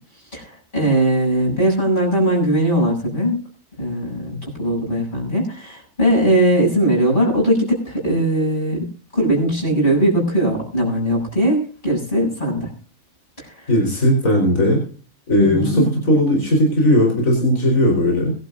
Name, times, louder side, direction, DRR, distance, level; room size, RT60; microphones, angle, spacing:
voice 1, 0.3-3.4 3.8-8.9 9.1-12.7 13.4-13.7 15.4-15.9, right 1 dB, 40° left, -2 dB, 7.9 m, -19 dB
voice 2, 13.7-14.8 15.3-18.3, left 1 dB, 85° left, 1 dB, 4.8 m, -17 dB
23.5 x 12.0 x 2.7 m, 0.38 s
omnidirectional pair, 1.4 m